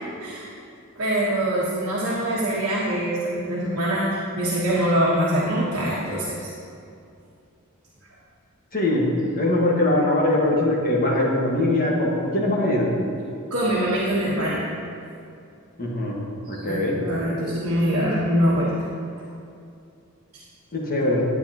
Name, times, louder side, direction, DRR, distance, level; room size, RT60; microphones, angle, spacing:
voice 1, 1.0-6.5 13.5-14.6 16.5-18.7, equal, 75° right, -7 dB, 1.3 m, -24 dB
voice 2, 8.7-9.1 9.3-12.9 15.8-16.2 16.5-17.0 20.7-21.3, left 1 dB, 40° left, -3 dB, 1.5 m, -22 dB
10.5 x 8.6 x 2.9 m, 2.5 s
head